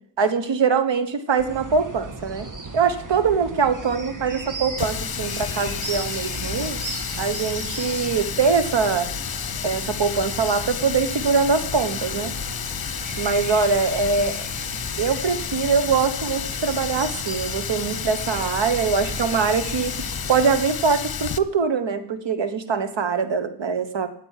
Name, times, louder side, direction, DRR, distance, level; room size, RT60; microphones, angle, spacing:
voice 1, 0.2-2.5 2.7-6.8 7.2-9.1 9.6-12.3 13.2-14.4 15.0-19.9 20.3-24.1, right 5 dB, 80° right, 11 dB, 1.3 m, -23 dB
sound 1, 1.4-20.6, right 2 dB, 45° right, 1.6 m, -37 dB
Water tap faucet, 4.8-21.4, left 8 dB, 55° left, 0.8 m, -31 dB
9.3 x 8.0 x 9.1 m, 0.63 s
cardioid pair, 60°, 43 cm